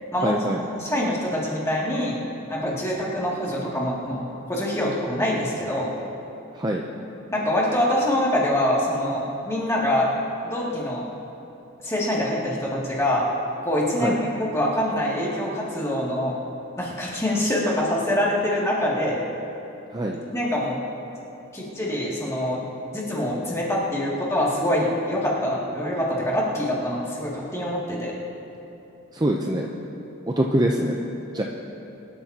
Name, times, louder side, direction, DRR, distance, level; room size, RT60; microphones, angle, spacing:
voice 1, 0.2-0.6 6.5-6.8 14.0-14.2 19.9-20.2 29.1-29.7 30.3-31.0 31.3-31.4, right 1 dB, 20° right, 0 dB, 0.6 m, -23 dB
voice 2, 0.8-2.1 2.5-4.2 4.5-5.9 7.3-10.1 10.4-11.0 11.8-13.3 13.6-16.4 16.8-19.2 20.3-20.8 21.5-22.6 22.9-28.1, left 1 dB, 15° left, -6 dB, 2.4 m, -25 dB
23.0 x 12.5 x 2.9 m, 2.9 s
head